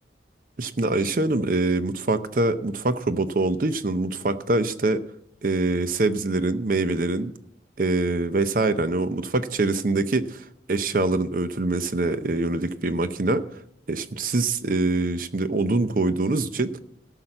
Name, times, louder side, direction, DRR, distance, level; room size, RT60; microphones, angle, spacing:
voice 1, 0.6-5.0 5.4-7.3 7.8-13.4 13.9-16.7, right 2 dB, 50° right, 12 dB, 0.7 m, -24 dB
14.0 x 5.8 x 7.8 m, 0.77 s
head